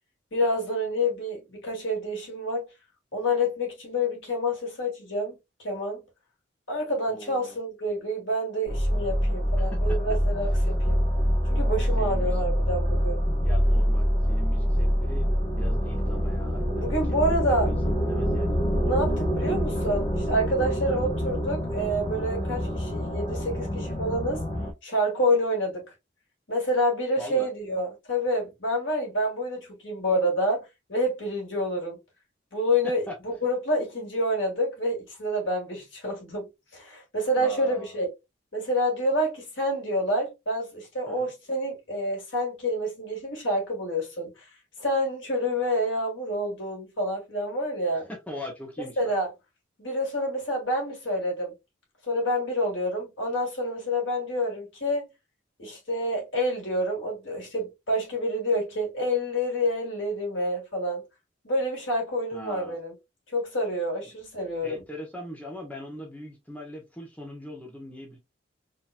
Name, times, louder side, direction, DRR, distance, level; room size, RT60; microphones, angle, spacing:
voice 1, 0.3-2.7 3.1-5.3 5.6-6.0 6.7-11.0 11.5-13.2 16.8-17.7 18.7-24.4 24.8-25.8 26.5-32.0 32.5-38.1 38.5-44.5 44.8-48.1 49.0-49.3 49.8-51.5 52.1-55.1 55.6-61.0 61.4-62.9 63.3-64.8, equal, 85° left, 2.4 m, -28 dB
voice 2, 7.1-7.6 9.6-10.7 12.0-12.4 13.4-18.6 19.4-19.5 20.9-21.1 27.2-27.5 33.1-33.2 37.4-38.0 41.1-41.3 48.1-49.1 62.3-62.8 64.6-68.2, equal, 10° left, 0.9 m, -41 dB
sound 1, 8.7-24.7, equal, 35° left, 1.1 m, -25 dB
4.2 x 2.9 x 2.3 m
head